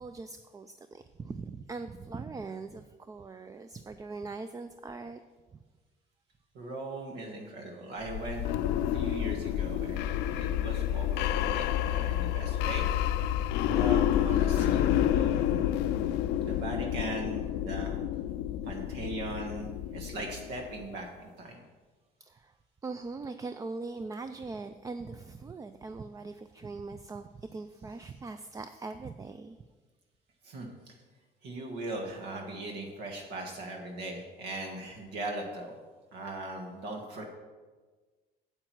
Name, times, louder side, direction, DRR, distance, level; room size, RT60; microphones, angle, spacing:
voice 1, 0.0-5.2 5.5-5.6 22.2-22.5 22.8-29.6, right 3 dB, 20° right, 9 dB, 0.4 m, -41 dB
voice 2, 6.5-8.4 8.9-12.9 13.6-15.7 16.4-18.0 18.6-21.6 30.4-30.9 31.4-35.8 36.1-37.2, right 2 dB, 80° right, 1 dB, 1.6 m, -39 dB
sound 1, 8.0-20.8, left 11 dB, 90° left, 0.4 m, -29 dB
8.7 x 7.8 x 4.6 m, 1.3 s
cardioid pair, 110°, 17 cm